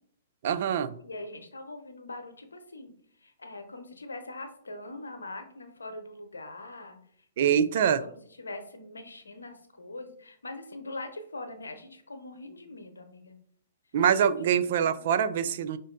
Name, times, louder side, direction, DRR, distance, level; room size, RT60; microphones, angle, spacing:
voice 1, 0.4-1.0 7.4-8.0 13.9-15.8, right 8 dB, 55° right, 13 dB, 0.4 m, -24 dB
voice 2, 1.0-2.9 3.2-7.0 7.4-7.6 8.0-13.4 14.3-15.0, left 2 dB, 90° left, 7 dB, 0.7 m, -42 dB
5.0 x 2.5 x 3.8 m, 0.62 s
hypercardioid pair, 125°, 0 cm